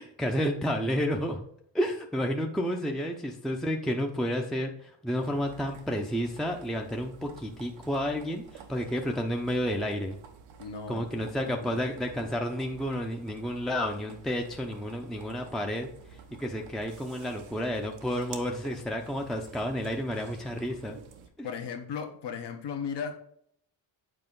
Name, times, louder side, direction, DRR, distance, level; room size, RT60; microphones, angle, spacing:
voice 1, 0.0-1.4 1.7-10.2 10.9-21.0 21.4-21.5, equal, ahead, 2 dB, 0.6 m, -31 dB
sound 1, 5.2-21.3, right 6 dB, 90° right, 0.9 m, -50 dB
voice 2, 10.6-11.8 21.4-23.2, left 6 dB, 65° left, 6 dB, 1.2 m, -37 dB
7.9 x 4.4 x 3.8 m, 0.68 s
cardioid pair, 100°, 45 cm